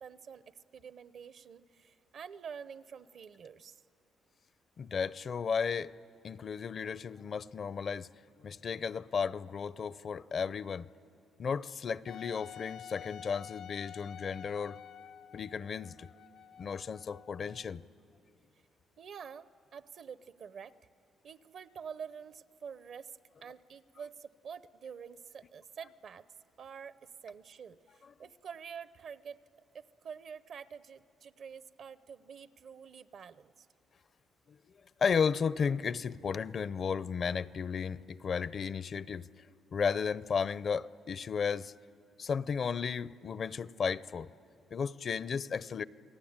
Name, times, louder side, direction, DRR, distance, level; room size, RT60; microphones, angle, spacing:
voice 1, 0.0-3.8 19.0-20.7 21.2-23.1 23.4-26.2 26.6-29.4 29.7-33.7, right 6 dB, 60° right, 15 dB, 0.7 m, -47 dB
voice 2, 4.8-5.9 6.2-8.1 8.4-10.9 11.4-14.8 15.3-16.1 16.6-17.8 34.5-34.6 35.0-39.3 39.7-41.7 42.2-44.3 44.7-45.8, left 6 dB, 50° left, 18 dB, 0.5 m, -34 dB
Wind instrument woodwind instrument, 12.1-17.7, left 9 dB, 80° left, 0.9 m, -49 dB
28.0 x 18.5 x 8.8 m, 2.6 s
cardioid pair, 90°, 0 cm